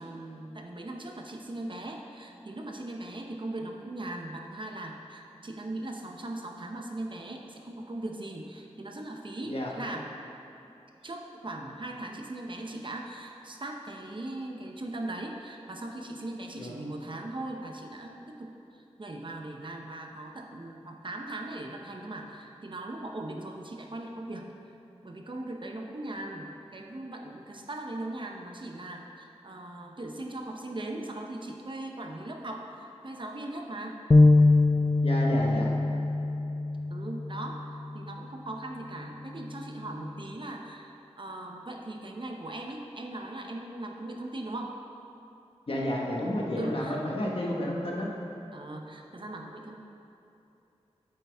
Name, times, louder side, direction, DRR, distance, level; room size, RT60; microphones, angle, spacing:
voice 1, 0.0-10.1 11.0-24.5 25.0-34.0 36.9-44.8 46.6-47.0 48.5-49.8, right 1 dB, 45° right, 2 dB, 0.9 m, -39 dB
sound 1, 34.1-37.6, left 2 dB, 30° left, 0.4 m, -22 dB
voice 2, 35.0-35.7 45.7-48.1, left 1 dB, 55° left, -3 dB, 1.5 m, -31 dB
8.6 x 8.0 x 3.5 m, 2.8 s
cardioid pair, 50°, 11 cm